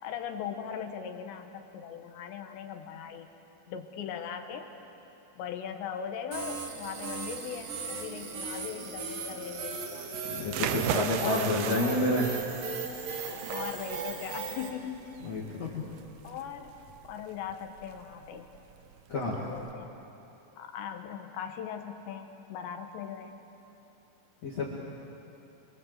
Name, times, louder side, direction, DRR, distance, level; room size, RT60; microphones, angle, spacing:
voice 1, 0.0-3.3 3.7-4.7 5.4-10.3 11.1-12.0 13.5-15.1 16.2-16.8 17.0-18.5 19.1-20.0 20.6-23.3, left 8 dB, 70° left, 6 dB, 3.2 m, -39 dB
sound 1, 6.3-14.7, right 5 dB, 55° right, 3.1 m, -37 dB
voice 2, 10.3-12.3 15.2-15.8 19.1-19.4 24.4-24.7, left 2 dB, 40° left, -5 dB, 2.9 m, -29 dB
sound 2, 10.4-19.7, right 9 dB, 80° right, 2.4 m, -38 dB
28.0 x 23.5 x 7.9 m, 3.0 s
omnidirectional pair, 5.7 m